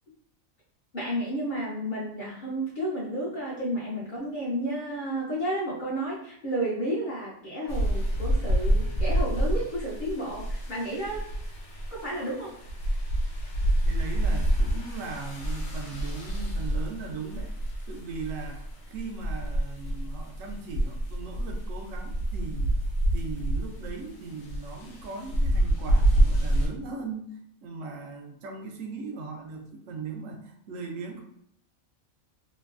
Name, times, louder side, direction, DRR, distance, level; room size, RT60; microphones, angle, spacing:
voice 1, 0.9-11.3 11.9-12.5, right 1 dB, 50° left, -5 dB, 0.7 m, -31 dB
sound 1, 7.7-26.7, right 1 dB, 75° left, 1.1 m, -27 dB
voice 2, 13.8-17.5 17.9-22.7 23.1-27.3 27.6-31.2, right 4 dB, 75° right, 3 dB, 0.9 m, -38 dB
3.0 x 2.6 x 2.4 m, 0.67 s
omnidirectional pair, 1.4 m